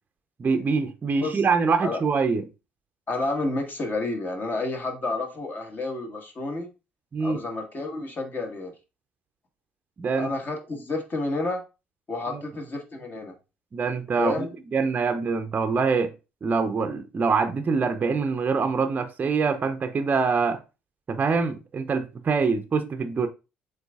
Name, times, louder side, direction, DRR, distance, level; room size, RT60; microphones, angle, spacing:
voice 1, 0.4-2.5 7.1-7.4 10.0-10.3 12.3-12.4 13.7-14.5 14.7-16.1 16.4-20.6 21.1-23.3, right 5 dB, 30° right, 0.6 m, -24 dB
voice 2, 3.1-6.7 7.2-8.7 10.2-11.6 12.1-13.3 14.2-14.5, left 2 dB, 35° left, 1.4 m, -30 dB
7.7 x 2.6 x 2.3 m
figure-of-eight pair, 55°, 5 cm